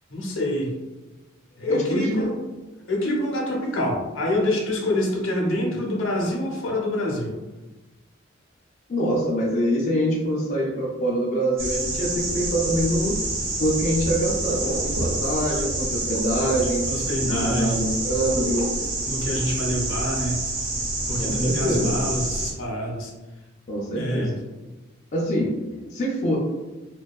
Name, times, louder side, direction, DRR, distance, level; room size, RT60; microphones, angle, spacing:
voice 1, 0.1-0.7 1.6-2.3 2.9-7.4 16.9-17.9 19.1-20.4 21.1-23.1 24.0-24.4, left 1 dB, 75° left, -1 dB, 0.6 m, -26 dB
voice 2, 1.7-2.2 8.9-13.1 13.6-16.8 17.2-18.7 21.2-22.0 23.7-24.3 25.1-25.5 25.9-26.4, equal, 35° left, -4 dB, 0.4 m, -24 dB
sound 1, 11.6-22.5, right 2 dB, 70° right, 0.8 m, -27 dB
2.6 x 2.2 x 2.3 m, 1.1 s
head